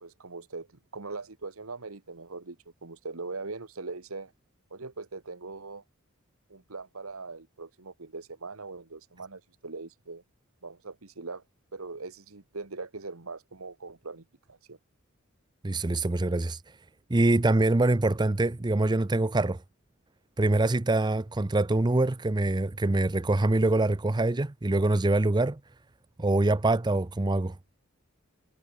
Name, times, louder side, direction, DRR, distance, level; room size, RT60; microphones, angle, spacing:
voice 1, 0.0-4.3 4.7-5.8 6.5-10.2 10.6-11.4 11.7-14.8, right 3 dB, 80° right, 1.5 m, -41 dB
voice 2, 15.6-16.6 17.1-19.6 20.4-25.6 26.2-27.6, right 2 dB, 20° right, 0.6 m, -24 dB
head